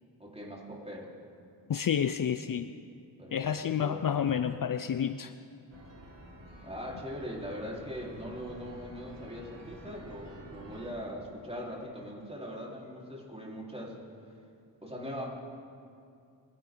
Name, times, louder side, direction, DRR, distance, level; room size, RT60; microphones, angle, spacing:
voice 1, 0.2-1.1 3.2-4.1 6.6-14.0 14.8-15.3, equal, 15° right, -4 dB, 4.4 m, -41 dB
voice 2, 1.7-2.7 3.3-5.3, left 8 dB, 50° left, 11 dB, 0.6 m, -29 dB
sound 1, 5.7-10.9, right 1 dB, 75° right, 2.8 m, -49 dB
23.5 x 11.5 x 4.0 m, 2.4 s
cardioid pair, 45°, 43 cm